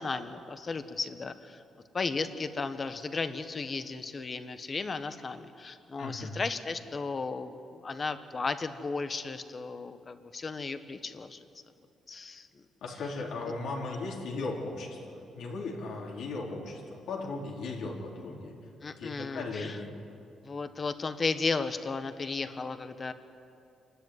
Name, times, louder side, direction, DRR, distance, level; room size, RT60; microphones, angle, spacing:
voice 1, 0.0-1.6 1.9-11.5 12.1-12.6 18.8-19.8 20.4-23.1, left 4 dB, 30° left, 10 dB, 1.1 m, -35 dB
voice 2, 6.0-6.4 12.8-18.5 18.9-19.9, left 3 dB, 70° left, -2 dB, 4.2 m, -37 dB
28.0 x 12.5 x 9.7 m, 2.6 s
cardioid pair, 140°, 0 cm